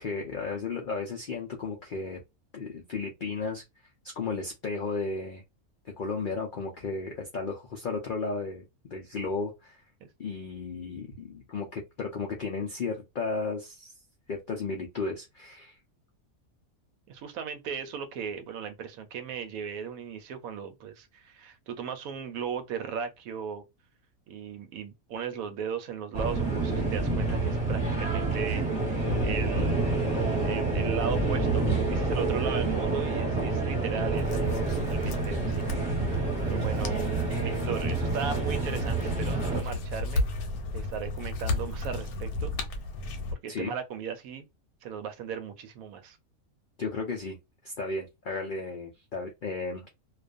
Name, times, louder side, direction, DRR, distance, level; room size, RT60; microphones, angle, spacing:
voice 1, 0.0-2.2 2.5-3.6 4.1-5.4 6.0-9.8 10.2-13.9 14.3-15.8 43.5-43.7 46.8-47.4 47.6-49.9, left 4 dB, 70° left, 0.4 m, -34 dB
voice 2, 17.1-23.6 24.3-28.7 29.2-29.7 30.4-40.2 40.7-42.5 43.3-44.5 44.8-46.2, right 7 dB, 75° right, 1.0 m, -37 dB
sound 1, 26.1-39.6, right 3 dB, 25° right, 1.0 m, -28 dB
sound 2, 34.2-43.3, left 2 dB, 85° left, 1.1 m, -33 dB
2.5 x 2.3 x 2.4 m
omnidirectional pair, 1.5 m